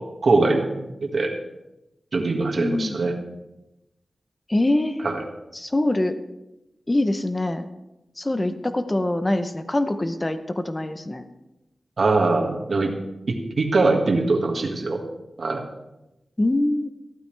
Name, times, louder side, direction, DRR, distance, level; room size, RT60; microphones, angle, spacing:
voice 1, 0.0-1.3 2.1-3.2 5.0-5.2 12.0-13.0 13.3-15.0 15.4-15.6, right 3 dB, 65° right, 2 dB, 1.7 m, -22 dB
voice 2, 2.6-3.0 4.5-5.1 5.5-6.1 6.9-7.6 8.2-11.2 16.4-16.9, left 1 dB, 25° left, 9 dB, 0.7 m, -24 dB
14.5 x 12.0 x 3.3 m, 0.95 s
wide cardioid pair, 110°, 0 cm